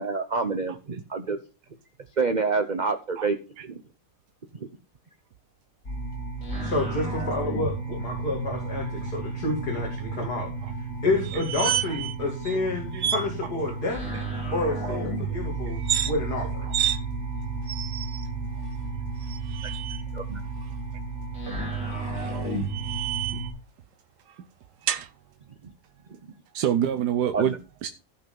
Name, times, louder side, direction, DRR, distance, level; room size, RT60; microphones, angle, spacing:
voice 1, 0.0-1.4 2.2-3.4 3.6-3.8 19.6-19.7 20.1-20.4 23.3-23.4 27.3-27.6, right 4 dB, 35° right, 8 dB, 0.7 m, -27 dB
sound 1, 5.8-23.5, right 3 dB, 55° left, 5.4 m, -32 dB
voice 2, 6.6-10.5 10.8-14.0 14.5-16.7, left 2 dB, 75° left, 0 dB, 3.2 m, -29 dB
sound 2, 11.2-12.2 12.4-12.6 13.0-13.3 15.7-16.1 16.7-17.0 17.7-18.3 19.2-20.0 21.9-23.5 24.9-25.1, right 10 dB, 60° right, 1.1 m, -29 dB
voice 3, 26.5-27.9, right 10 dB, 90° right, 8 dB, 1.4 m, -28 dB
15.5 x 5.7 x 5.4 m, 0.33 s
omnidirectional pair, 1.7 m